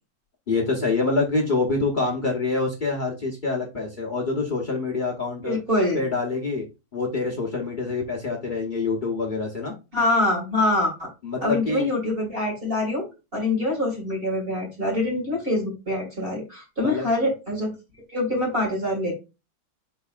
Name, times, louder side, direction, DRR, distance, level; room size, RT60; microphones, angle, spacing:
voice 1, 0.5-5.6 5.9-6.7 6.9-9.7 11.2-11.9 16.8-17.1, left 3 dB, 75° left, -3 dB, 0.4 m, -26 dB
voice 2, 5.4-6.0 9.9-11.1 11.4-13.1 13.3-17.7 18.1-19.1, left 1 dB, 30° right, -3 dB, 2.0 m, -24 dB
5.2 x 3.9 x 2.4 m, 0.28 s
omnidirectional pair, 2.3 m